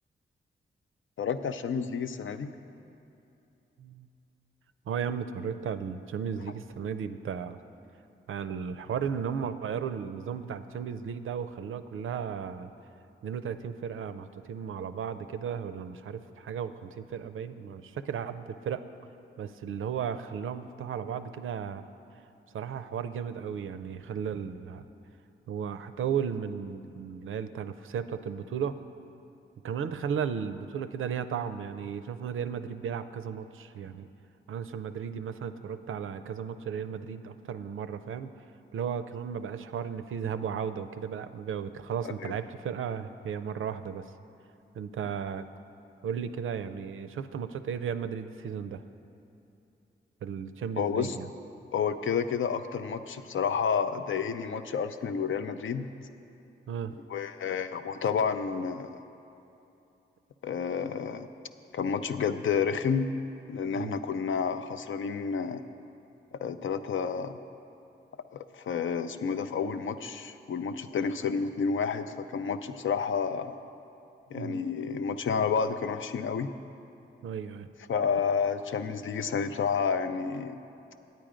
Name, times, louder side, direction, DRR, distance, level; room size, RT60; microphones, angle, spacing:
voice 1, 1.2-2.5 42.2-42.3 50.8-51.1 51.7-55.9 57.1-58.9 60.4-61.3 61.7-63.1 63.5-65.6 66.4-67.4 68.3-73.6 74.3-76.5 77.9-80.6, left 6 dB, 75° left, 9 dB, 0.5 m, -30 dB
voice 2, 4.9-7.6 8.3-12.7 13.2-18.8 19.4-21.8 22.5-24.8 25.5-28.8 29.6-34.1 34.5-38.3 38.7-44.1 44.8-45.4 46.0-48.8 50.2-51.3 56.7-56.9 63.7-64.0 74.3-74.6 77.2-77.7, right 7 dB, 90° right, 11 dB, 0.4 m, -35 dB
9.2 x 9.1 x 5.0 m, 2.8 s
cardioid pair, 65°, 20 cm